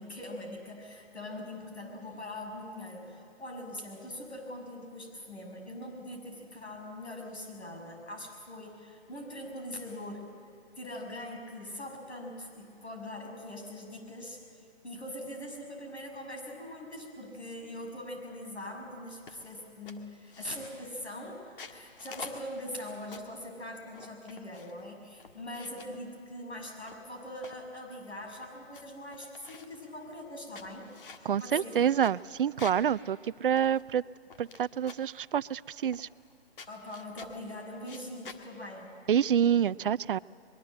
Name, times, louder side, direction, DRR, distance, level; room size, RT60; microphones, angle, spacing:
voice 1, 0.0-10.3 10.8-30.9 31.4-31.8 36.7-38.9, left 1 dB, 90° left, 2 dB, 6.7 m, -42 dB
sound 1, 19.3-19.5 19.9-20.8 21.4-23.4 23.9-24.8 25.2-26.0 26.6-27.6 28.1-28.2 28.4-28.8 29.1-29.8 30.3-32.9 33.2-33.3 33.6-34.6 34.9-35.2 35.9-36.3 36.6-37.4 37.8-38.4, left 5 dB, 55° left, 2.0 m, -49 dB
voice 2, 31.2-34.0 34.4-36.1 39.1-40.2, right 9 dB, 55° right, 20 dB, 0.5 m, -27 dB
23.5 x 22.0 x 7.8 m, 2.7 s
figure-of-eight pair, 150°, 32 cm